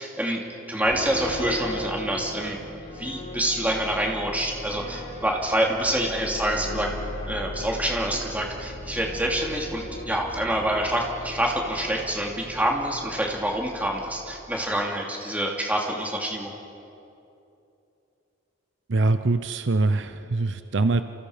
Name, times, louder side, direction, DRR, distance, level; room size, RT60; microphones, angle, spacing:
voice 1, 0.0-2.6 2.9-6.9 7.3-16.5, right 1 dB, 10° right, -1 dB, 2.7 m, -27 dB
sound 1, 0.9-14.6, left 1 dB, 70° left, 6.0 m, -38 dB
voice 2, 18.9-21.0, right 3 dB, 60° right, 10 dB, 0.7 m, -23 dB
28.5 x 27.5 x 5.1 m, 2.8 s
head